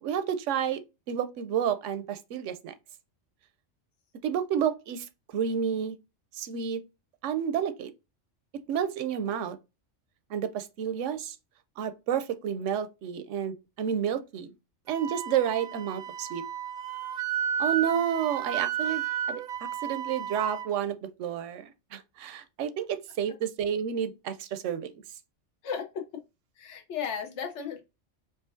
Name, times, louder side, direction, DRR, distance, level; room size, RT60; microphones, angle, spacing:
voice 1, 0.0-0.8 1.1-2.7 4.2-5.1 5.3-6.0 6.3-6.8 7.2-7.9 8.7-9.6 10.3-11.4 11.8-14.5 14.9-16.4 17.6-19.4 19.8-24.9, right 8 dB, 80° right, 0.9 m, -30 dB
Wind instrument woodwind instrument, 14.9-20.7, right 9 dB, 55° right, 0.5 m, -32 dB
voice 2, 25.6-26.2 26.6-27.8, left 7 dB, 70° left, 1.1 m, -35 dB
4.8 x 2.6 x 2.5 m
omnidirectional pair, 1.3 m